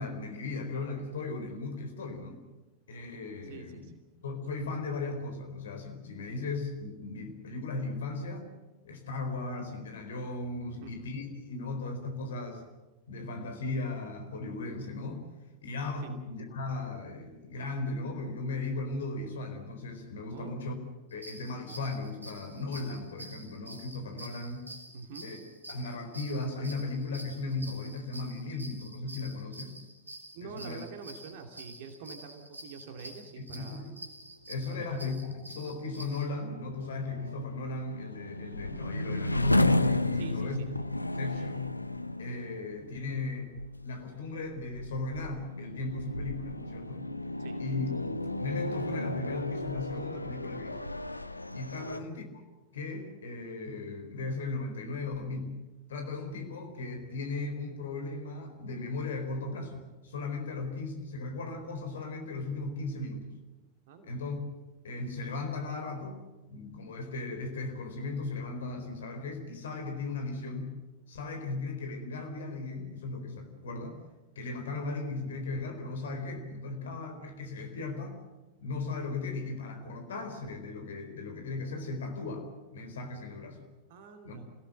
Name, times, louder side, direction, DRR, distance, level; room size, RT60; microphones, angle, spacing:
voice 1, 0.0-2.4 2.9-3.9 4.2-8.5 8.8-12.6 13.1-15.2 15.6-20.7 21.1-24.7 25.2-29.8 30.4-30.8 33.4-33.9 34.5-40.6 41.1-41.7 42.2-43.5 43.8-47.0 47.6-50.8 51.5-52.2 52.7-55.5 55.9-63.3 64.1-64.4 64.8-66.2 66.5-70.7 71.1-74.0 74.4-78.2 78.6-83.6 84.2-84.4, left 3 dB, 65° left, 5 dB, 4.3 m, -37 dB
voice 2, 3.4-4.0 10.8-10.9 16.0-16.1 20.3-20.5 24.9-25.3 30.3-33.9 34.7-35.1 40.1-40.7 47.4-47.6 51.8-52.0 63.9-64.2 83.9-84.5, right 5 dB, 50° right, 5 dB, 2.5 m, -46 dB
sound 1, 21.1-36.3, right 1 dB, 80° right, 2.4 m, -48 dB
sound 2, 35.0-52.0, left 2 dB, 85° left, 0.8 m, -33 dB
27.0 x 17.5 x 7.8 m, 1.1 s
figure-of-eight pair, 90°, 0 cm